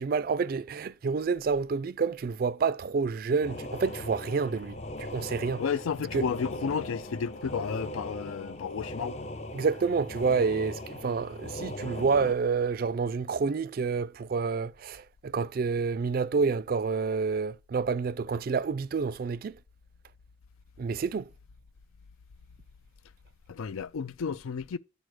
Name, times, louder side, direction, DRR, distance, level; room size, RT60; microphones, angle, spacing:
voice 1, 0.0-5.6 6.1-6.3 9.5-19.6 20.8-21.3, right 5 dB, 45° right, 0.3 m, -28 dB
sound 1, 3.4-12.3, left 1 dB, 35° left, 0.5 m, -39 dB
voice 2, 5.6-9.2 23.5-24.8, left 6 dB, 85° left, 0.4 m, -32 dB
9.2 x 4.2 x 4.8 m
head